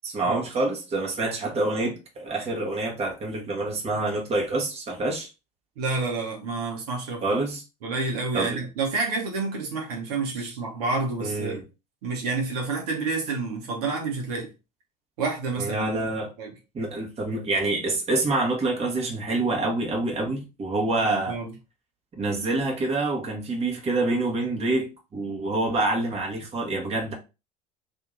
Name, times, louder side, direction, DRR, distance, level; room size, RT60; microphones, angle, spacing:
voice 1, 0.0-5.3 7.2-7.6 8.3-8.6 10.3-10.6 11.2-11.6 15.6-16.3 16.7-21.3 22.2-27.1, right 2 dB, 30° right, 1.3 m, -27 dB
voice 2, 5.8-7.4 7.8-11.6 12.0-14.5 15.2-16.0 16.4-16.5 21.3-21.5, right 3 dB, 70° right, 1.1 m, -29 dB
2.9 x 2.7 x 3.8 m
figure-of-eight pair, 70°, 21 cm